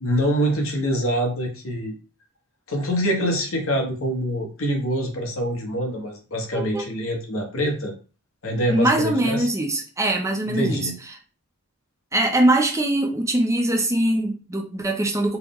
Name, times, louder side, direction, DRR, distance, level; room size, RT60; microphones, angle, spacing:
voice 1, 0.0-1.9 2.7-7.9 8.4-9.5 10.5-11.0, equal, 65° left, 2 dB, 1.0 m, -25 dB
voice 2, 6.5-6.8 8.7-10.9 12.1-15.4, right 1 dB, 15° right, 1 dB, 0.5 m, -22 dB
4.6 x 2.1 x 3.5 m, 0.36 s
head